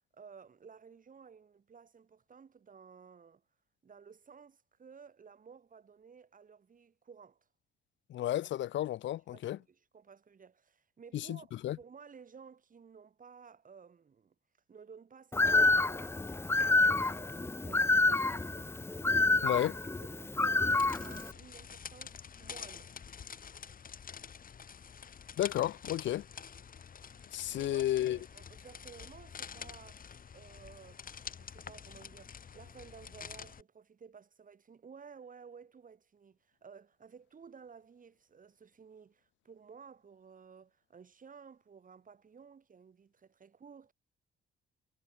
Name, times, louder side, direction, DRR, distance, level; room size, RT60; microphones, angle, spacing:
voice 1, 0.1-3.4 3.8-7.4 9.3-14.3 14.7-16.2 16.7-18.5 20.0-23.0 27.5-30.1 30.3-43.9, right 6 dB, 40° right, 6.5 m, -55 dB
voice 2, 8.1-9.6 11.1-11.4 11.6-11.8 19.4-19.8 25.4-26.2 27.3-28.2, left 13 dB, 70° left, 0.7 m, -32 dB
Bird, 15.3-21.3, left 3 dB, 10° left, 0.5 m, -28 dB
sound 1, 20.6-33.6, left 7 dB, 45° left, 3.0 m, -48 dB
cardioid pair, 90°, 20 cm